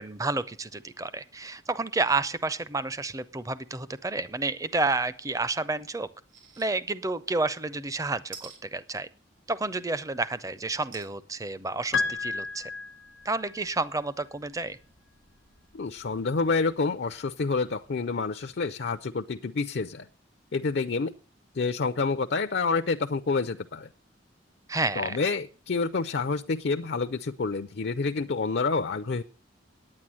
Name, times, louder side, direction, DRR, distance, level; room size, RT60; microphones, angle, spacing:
voice 1, 0.0-6.1 6.6-9.1 9.5-12.7 13.2-14.8 24.7-25.2, right 3 dB, 20° right, 15 dB, 0.6 m, -30 dB
sound 1, 6.3-6.7 7.1-7.2 8.3-8.6 10.9-11.2 11.7-11.8 12.1-12.2, right 7 dB, 80° right, 4.2 m, -44 dB
Piano, 11.9-13.6, left 4 dB, 85° left, 1.3 m, -31 dB
voice 2, 15.7-20.1 20.5-21.1 21.5-23.9 25.0-29.2, left 4 dB, 60° left, 9 dB, 0.5 m, -28 dB
9.8 x 9.2 x 7.5 m, 0.40 s
head